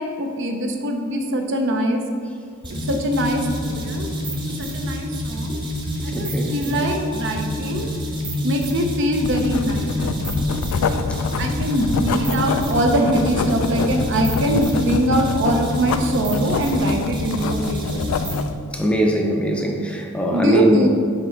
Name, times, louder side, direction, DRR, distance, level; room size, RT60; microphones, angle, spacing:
voice 1, 0.0-2.0 2.6-4.1 4.5-5.6 6.0-7.9 8.4-10.5 10.8-11.0 11.4-18.0 20.3-20.9, right 1 dB, 60° right, 3 dB, 0.6 m, -23 dB
sound 1, 2.6-18.5, left 1 dB, 20° right, 0.9 m, -27 dB
voice 2, 6.1-6.5 11.1-11.2 18.7-20.9, right 1 dB, 5° left, 1 dB, 0.5 m, -20 dB
Writing, 9.2-18.6, left 5 dB, 80° left, 0.3 m, -26 dB
5.8 x 4.1 x 4.5 m, 2.2 s
head